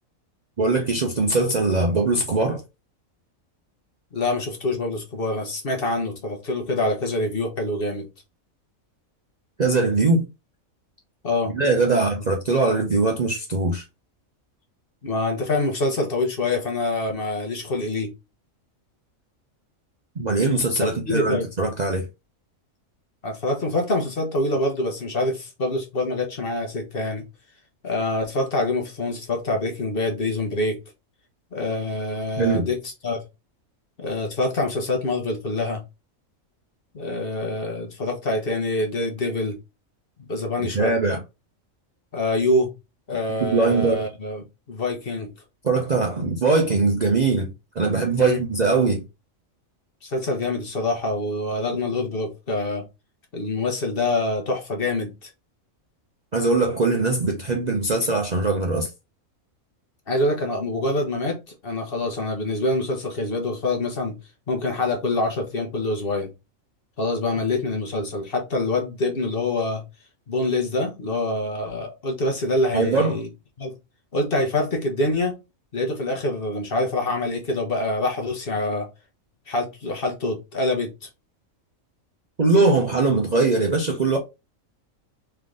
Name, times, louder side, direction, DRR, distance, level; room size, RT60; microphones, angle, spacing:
voice 1, 0.6-2.6 9.6-10.3 11.5-13.8 20.2-22.1 32.4-32.7 40.7-41.2 43.4-44.1 45.6-47.5 47.8-49.0 56.3-58.9 72.7-73.2 82.4-84.2, right 3 dB, 40° right, 0.6 m, -21 dB
voice 2, 4.1-8.1 11.2-11.5 15.0-18.1 20.8-21.4 23.2-27.2 27.8-30.8 31.5-33.2 34.0-35.8 36.9-39.6 40.2-40.9 42.1-42.7 43.1-45.3 48.2-48.4 50.0-52.9 53.3-55.3 60.1-64.1 64.5-66.3 67.0-69.8 70.3-73.3 73.6-73.7 74.1-75.3 75.7-78.9 79.5-81.1, left 2 dB, 45° left, 1.2 m, -25 dB
3.7 x 3.3 x 3.6 m
omnidirectional pair, 1.4 m